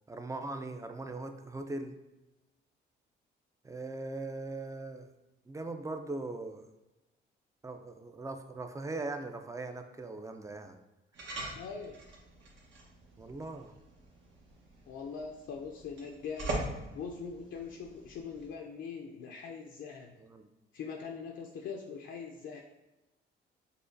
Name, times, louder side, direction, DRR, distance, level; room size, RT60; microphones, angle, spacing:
voice 1, 0.1-2.0 3.6-5.1 5.5-6.7 7.6-10.8 13.2-13.7 20.2-20.5, right 2 dB, 15° right, 7 dB, 0.4 m, -40 dB
sound 1, 11.1-18.5, right 2 dB, 70° right, 1.1 m, -43 dB
voice 2, 11.5-12.0 14.9-16.6 16.9-20.2 20.7-22.6, left 5 dB, 70° left, 1 dB, 0.5 m, -42 dB
6.6 x 2.3 x 2.6 m, 1.0 s
cardioid pair, 90°, 20 cm